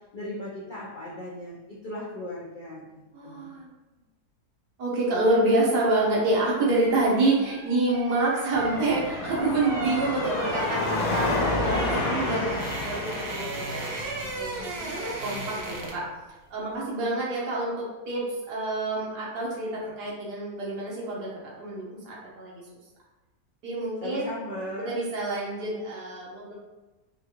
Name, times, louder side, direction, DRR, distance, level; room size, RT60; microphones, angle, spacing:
voice 1, 0.1-3.6 24.0-25.0, left 1 dB, 65° left, -6 dB, 0.5 m, -37 dB
voice 2, 3.1-3.7 4.8-11.3 11.6-16.0 16.5-21.3 21.6-22.6 23.6-24.3 24.8-26.5, right 2 dB, 90° right, -5 dB, 1.6 m, -27 dB
sound 1, 6.1-16.1 16.4-16.6, right 2 dB, 55° right, 0.7 m, -36 dB
Car passing by / Traffic noise roadway noise / Engine, 8.5-15.9, left 2 dB, 85° left, 1.2 m, -31 dB
5.1 x 2.4 x 2.9 m, 1.1 s
omnidirectional pair, 1.7 m